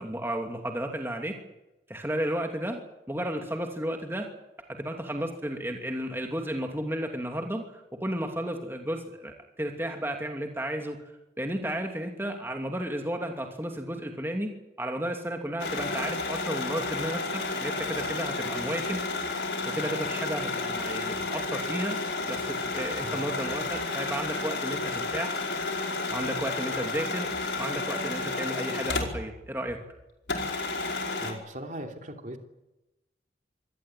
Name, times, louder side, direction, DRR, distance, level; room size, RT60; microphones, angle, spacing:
voice 1, 0.0-1.4 1.9-2.8 3.1-4.3 4.7-11.0 11.4-14.5 14.8-19.0 19.6-22.0 22.3-25.4 26.1-27.3 27.6-29.8, right 1 dB, 15° right, 3 dB, 2.7 m, -33 dB
sound 1, 15.6-29.4 29.7-29.8 30.3-31.3, left 3 dB, 85° left, 4.9 m, -31 dB
voice 2, 31.2-32.4, right 1 dB, 45° right, 4 dB, 3.0 m, -39 dB
25.0 x 18.5 x 9.2 m, 0.96 s
head